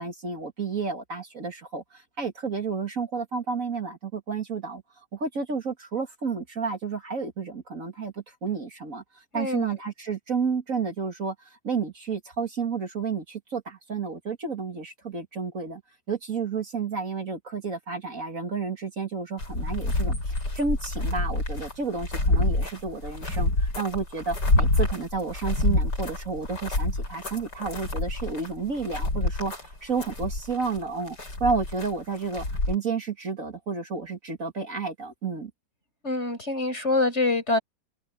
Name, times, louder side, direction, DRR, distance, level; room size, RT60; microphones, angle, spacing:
voice 1, 0.0-4.8 5.1-15.8 16.1-35.5, right 5 dB, 50° right, 2.5 m, -31 dB
voice 2, 9.3-9.8 36.0-37.6, left 2 dB, 40° left, 7.3 m, -25 dB
sound 1, 19.4-32.7, left 2 dB, 85° left, 7.7 m, -27 dB
omnidirectional pair, 1.8 m